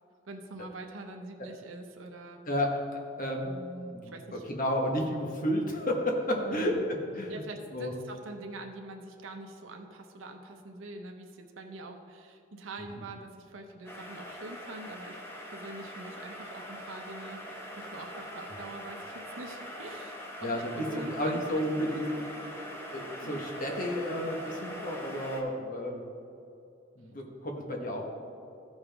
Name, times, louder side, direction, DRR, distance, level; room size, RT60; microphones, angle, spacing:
voice 1, 0.3-2.4 3.4-4.4 6.3-6.8 7.3-15.2 15.5-22.3 23.2-23.4, right 2 dB, 85° right, 4 dB, 0.8 m, -44 dB
voice 2, 2.5-3.5 3.9-7.4 7.7-7.9 20.4-22.1 22.7-26.0 27.0-28.1, equal, 45° left, 1 dB, 1.2 m, -32 dB
sound 1, 13.8-25.4, equal, 10° left, 1.0 m, -43 dB
14.5 x 5.6 x 3.4 m, 2.6 s
head